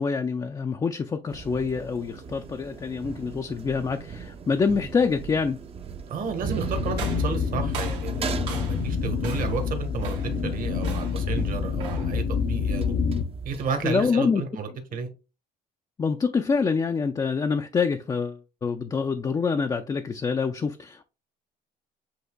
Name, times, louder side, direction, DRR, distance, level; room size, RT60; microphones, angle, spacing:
voice 1, 0.0-5.6 13.8-14.4 16.0-21.0, left 5 dB, 20° left, 0.4 m, -26 dB
sound 1, 1.3-14.1, right 6 dB, 35° right, 0.6 m, -38 dB
voice 2, 6.1-12.9 13.4-15.1, right 5 dB, 55° right, 1.2 m, -32 dB
sound 2, 6.6-13.2, left 6 dB, 55° left, 0.8 m, -27 dB
sound 3, 6.9-8.9 9.2-9.6 10.0-10.4 10.8-11.3 11.8-12.2, right 6 dB, 90° right, 1.9 m, -39 dB
7.9 x 2.8 x 2.2 m
cardioid pair, 110°, 17 cm